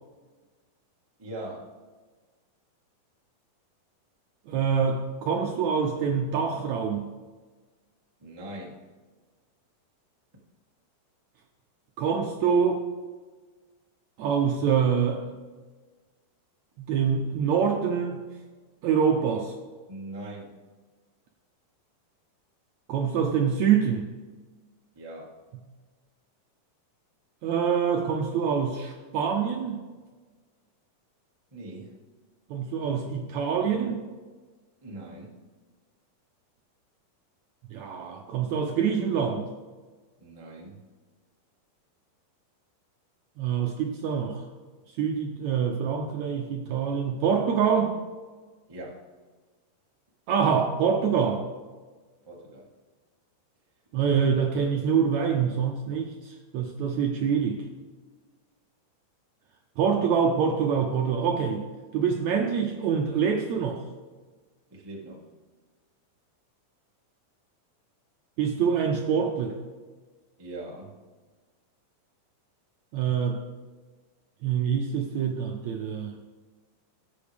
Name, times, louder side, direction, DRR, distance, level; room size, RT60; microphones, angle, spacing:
voice 1, 1.2-1.7 8.2-8.8 19.9-20.5 24.9-25.3 31.5-32.0 34.8-35.3 40.2-40.8 48.7-49.0 52.2-52.7 64.7-65.3 70.4-70.9, right 1 dB, 25° right, -3 dB, 0.5 m, -41 dB
voice 2, 4.5-7.1 12.0-12.8 14.2-15.3 16.8-18.2 18.8-19.5 22.9-24.1 27.4-29.8 32.5-34.0 37.7-39.5 43.4-44.5 44.9-48.0 50.3-51.5 53.9-57.7 59.8-63.9 68.4-69.6 72.9-73.4 74.4-76.2, right 7 dB, 75° right, 2 dB, 1.7 m, -25 dB
17.0 x 7.8 x 3.5 m, 1.4 s
omnidirectional pair, 4.0 m